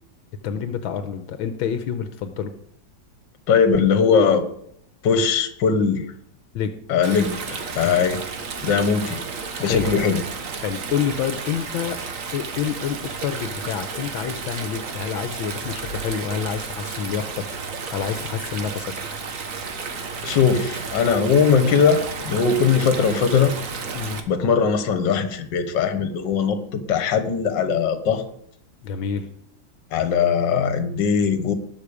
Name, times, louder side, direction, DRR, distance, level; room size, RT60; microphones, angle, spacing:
voice 1, 0.4-2.5 6.6-6.7 7.8-8.0 9.6-9.9 10.6-12.0 12.3-17.5 17.9-19.7 24.0-24.2 28.8-29.3, left 8 dB, 80° left, 9 dB, 1.6 m, -28 dB
voice 2, 3.5-4.5 5.0-6.1 6.9-8.2 8.6-9.2 9.6-10.2 20.2-23.5 24.3-28.2 29.9-31.5, left 6 dB, 65° left, 10 dB, 1.8 m, -20 dB
Stream, 7.0-24.2, right 5 dB, 45° right, 1.4 m, -32 dB
19.0 x 6.7 x 5.0 m, 0.69 s
omnidirectional pair, 2.2 m